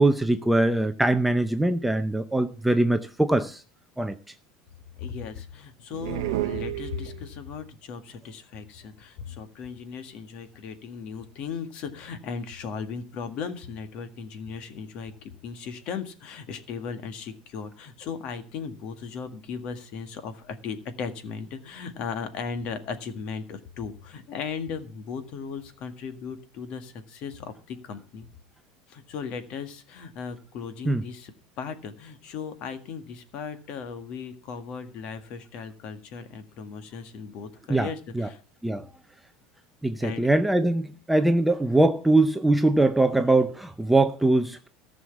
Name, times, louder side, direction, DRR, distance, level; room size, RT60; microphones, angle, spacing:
voice 1, 0.0-3.6 4.0-4.2 30.9-31.0 37.7-37.9 38.2-38.3 38.6-38.9 39.8-44.7, right 2 dB, 5° right, 8 dB, 0.6 m, -22 dB
voice 2, 5.0-28.3 28.9-38.4 40.0-40.3, left 6 dB, 45° left, 9 dB, 1.9 m, -37 dB
sound 1, 5.9-7.5, right 15 dB, 85° right, 0.7 m, -31 dB
14.5 x 6.3 x 7.1 m, 0.39 s
supercardioid pair, 155°, 2 cm